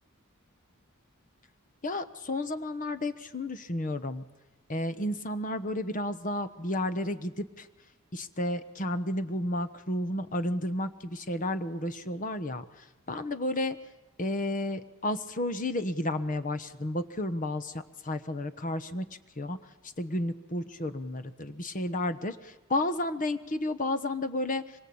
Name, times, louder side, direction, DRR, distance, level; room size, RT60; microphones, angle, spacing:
voice 1, 1.8-4.2 4.7-7.7 8.1-12.6 13.1-13.8 14.2-19.0 19.4-19.6 20.0-24.6, left 1 dB, 40° left, 11 dB, 1.1 m, -32 dB
25.0 x 22.5 x 8.7 m, 1.1 s
head